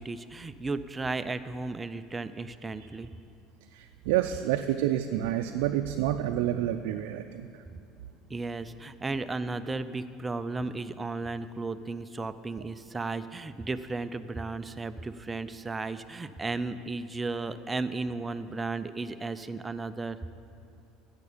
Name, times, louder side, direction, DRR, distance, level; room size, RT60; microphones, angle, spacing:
voice 1, 0.0-3.1 8.3-20.2, right 3 dB, 15° right, 11 dB, 0.4 m, -34 dB
voice 2, 3.7-7.5, right 12 dB, 85° right, 6 dB, 0.4 m, -29 dB
13.5 x 8.0 x 5.1 m, 2.7 s
supercardioid pair, 120°, 0 cm